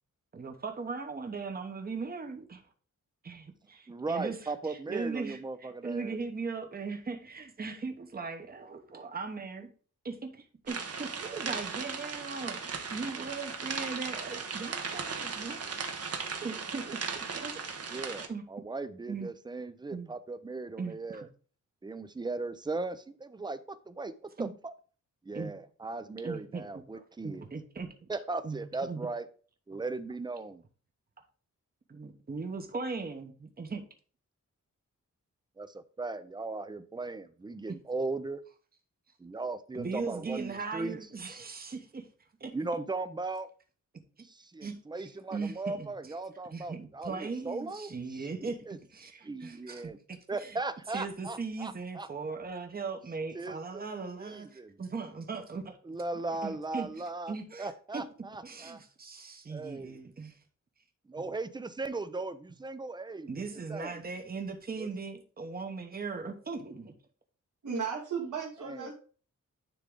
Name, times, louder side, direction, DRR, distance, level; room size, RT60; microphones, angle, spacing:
voice 1, 0.3-2.6 3.2-4.4 4.6-9.7 10.0-15.8 16.4-17.0 17.3-17.6 18.3-18.4 19.1-19.3 19.9-20.1 20.8-21.3 24.4-24.5 25.3-25.5 26.2-26.6 26.9-28.1 28.4-29.1 29.7-29.8 31.9-33.8 37.7-37.8 39.7-42.1 42.4-42.5 44.6-46.1 46.5-48.6 48.9-50.6 50.9-55.8 56.4-58.0 58.4-60.4 61.2-61.3 63.3-66.9, right 4 dB, 30° right, 5 dB, 1.0 m, -39 dB
voice 2, 3.9-6.2 17.9-21.3 21.8-24.7 25.2-27.5 28.1-29.3 29.7-30.6 35.6-38.4 39.2-41.0 41.3-41.4 42.5-43.5 44.2-48.8 49.2-50.0 50.3-52.1 53.3-53.9 54.2-54.8 55.8-58.8 59.5-60.0 61.1-64.0 64.8-64.9 68.6-68.9, right 3 dB, 15° right, 12 dB, 0.5 m, -38 dB
sound 1, 10.7-18.3, right 5 dB, 50° right, 1.0 m, -37 dB
voice 3, 67.6-68.9, right 6 dB, 70° right, -4 dB, 2.0 m, -35 dB
10.0 x 3.7 x 3.7 m, 0.41 s
wide cardioid pair, 165°, 31 cm